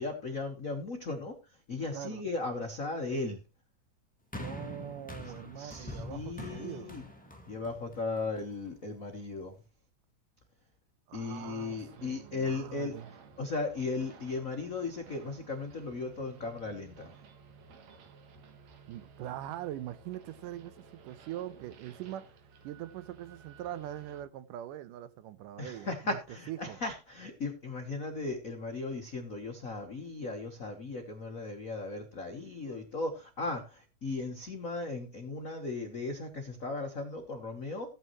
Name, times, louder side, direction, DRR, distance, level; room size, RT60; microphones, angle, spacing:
voice 1, 0.0-3.4 5.6-7.0 7.5-9.6 11.1-13.0 13.4-17.1 25.6-37.9, left 3 dB, 85° left, 0.7 m, -37 dB
voice 2, 1.9-2.2 4.3-6.9 11.1-13.1 18.9-22.3 22.6-26.2 26.5-26.8, right 12 dB, 85° right, 2.4 m, -42 dB
sound 1, 4.3-8.7 9.5-9.6, left 1 dB, 5° left, 0.8 m, -44 dB
sound 2, 11.6-24.2, right 5 dB, 65° right, 2.5 m, -55 dB
15.5 x 9.2 x 3.1 m
omnidirectional pair, 3.7 m